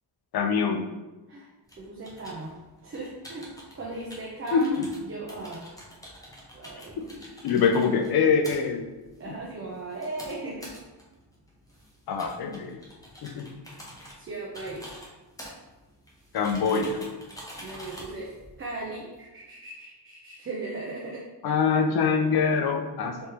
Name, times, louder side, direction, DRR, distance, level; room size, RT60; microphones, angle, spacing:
voice 1, 0.3-0.8 4.5-4.9 7.0-7.1 7.4-8.9 9.3-9.4 12.1-12.8 13.2-13.5 16.3-17.0 21.4-23.3, left 5 dB, 60° left, 5 dB, 0.5 m, -24 dB
sound 1, 1.7-19.2, equal, 10° left, 0.7 m, -47 dB
voice 2, 1.8-2.5 2.8-4.8 5.1-5.7 6.5-7.3 9.2-10.7 14.2-14.9 17.6-18.3 18.6-21.2 23.0-23.3, right 2 dB, 30° right, -4 dB, 0.6 m, -37 dB
3.4 x 3.1 x 2.9 m, 1.1 s
wide cardioid pair, 120°, 42 cm